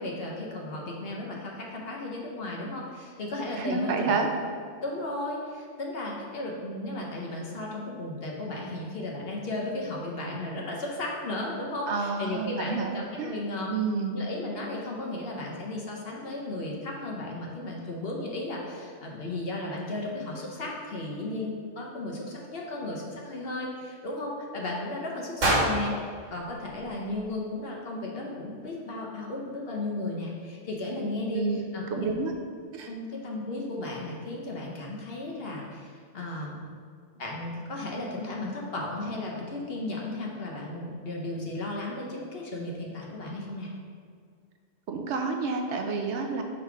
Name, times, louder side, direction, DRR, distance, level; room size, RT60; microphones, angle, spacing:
voice 1, 0.0-4.3 4.8-13.7 14.1-25.9 26.3-31.4 31.7-32.1 32.9-36.6 37.2-43.7, left 2 dB, 55° left, -2 dB, 1.1 m, -35 dB
voice 2, 3.6-4.3 11.9-13.4 13.7-14.2 31.3-31.6 31.9-32.3 32.7-32.9 44.9-46.4, right 4 dB, 70° right, 4 dB, 0.9 m, -29 dB
sound 1, 25.4-27.5, right 1 dB, 90° right, 1.8 m, -29 dB
5.4 x 3.8 x 4.6 m, 2.2 s
omnidirectional pair, 1.2 m